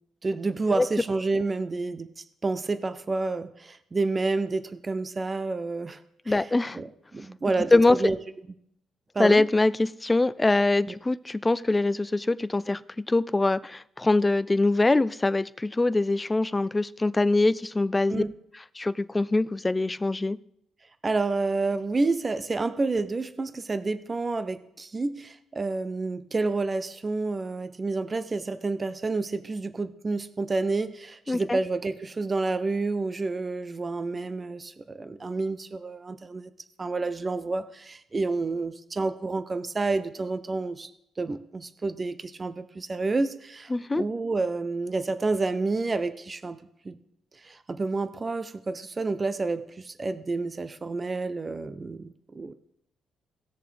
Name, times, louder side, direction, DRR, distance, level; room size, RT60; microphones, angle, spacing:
voice 1, 0.2-6.0 6.3-6.5 6.8-8.2 9.1-9.4 10.9-11.0 18.1-18.3 21.0-36.5 36.8-40.9 41.2-46.6 46.8-47.0 47.4-52.5, right 3 dB, 30° right, 11 dB, 0.6 m, -29 dB
voice 2, 6.3-6.8 7.7-8.1 9.2-12.8 13.1-18.2 18.8-20.4 31.3-31.6 43.7-44.0, left 2 dB, 15° left, 17 dB, 0.4 m, -23 dB
17.5 x 6.8 x 3.4 m, 0.75 s
cardioid pair, 90°, 0 cm